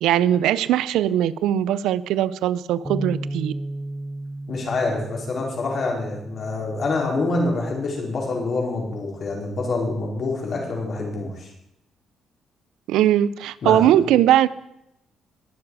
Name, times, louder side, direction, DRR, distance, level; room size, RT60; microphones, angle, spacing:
voice 1, 0.0-3.5 12.9-14.5, right 12 dB, 90° right, 18 dB, 0.5 m, -20 dB
Bass guitar, 2.9-7.3 7.9-9.1, right 1 dB, 5° left, 1.2 m, -35 dB
voice 2, 4.5-11.5 13.6-14.0, left 3 dB, 50° left, -1 dB, 4.5 m, -26 dB
20.5 x 7.2 x 4.8 m, 0.82 s
cardioid pair, 90°, 0 cm